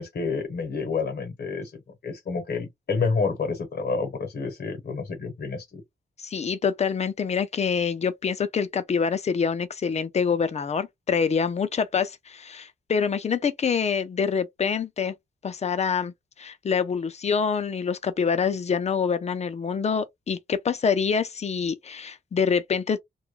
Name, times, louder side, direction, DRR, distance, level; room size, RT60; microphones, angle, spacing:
voice 1, 0.0-5.8, left 4 dB, 60° left, 0.9 m, -29 dB
voice 2, 6.2-15.1 15.4-23.0, left 6 dB, 40° left, 0.4 m, -26 dB
2.2 x 2.1 x 3.1 m
wide cardioid pair, 155°, 18 cm